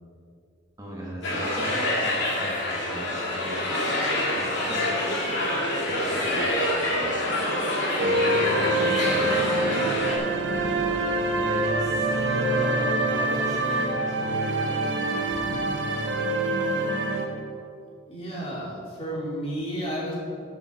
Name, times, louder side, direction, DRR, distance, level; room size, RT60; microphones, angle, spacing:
voice 1, 0.8-3.9 4.3-4.8 5.9-7.6 8.0-10.1 11.4-15.2, equal, 20° right, -4 dB, 1.3 m, -38 dB
sound 1, 1.2-10.2, left 1 dB, 60° left, 2.2 m, -26 dB
sound 2, 8.0-17.3, right 2 dB, 70° right, 1.1 m, -25 dB
voice 2, 18.1-20.1, equal, 30° left, -6 dB, 2.8 m, -32 dB
12.5 x 7.1 x 4.5 m, 2.5 s
head